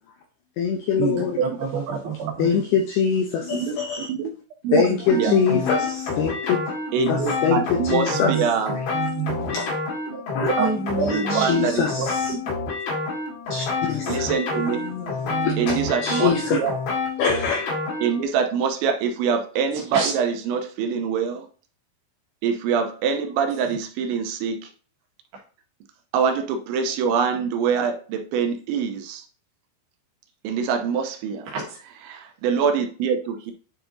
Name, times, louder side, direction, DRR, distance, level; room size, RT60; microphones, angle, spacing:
voice 1, 0.6-1.4 2.4-4.1 4.7-6.3 7.1-8.9 9.4-9.7 10.3-10.5 11.0-12.4 13.5-14.3 15.1-16.6 17.2-17.7, left 6 dB, 80° left, 3 dB, 2.2 m, -24 dB
voice 2, 1.4-2.5 4.7-4.8 5.2-5.4 7.0-7.3 8.1-8.4 8.9-9.7 10.6-11.5 14.3-15.9 19.7-20.1 31.5-31.8, right 5 dB, 65° right, -1 dB, 3.2 m, -29 dB
sound 1, 5.1-18.2, left 4 dB, 65° left, 3.2 m, -28 dB
voice 3, 6.9-8.7 10.4-10.7 11.0-11.8 12.3-12.4 14.1-14.9 15.6-16.7 18.0-21.4 22.4-24.6 26.1-29.2 30.4-31.4 32.1-33.5, right 6 dB, 85° right, 5 dB, 3.0 m, -24 dB
10.5 x 4.6 x 2.6 m, 0.41 s
omnidirectional pair, 5.4 m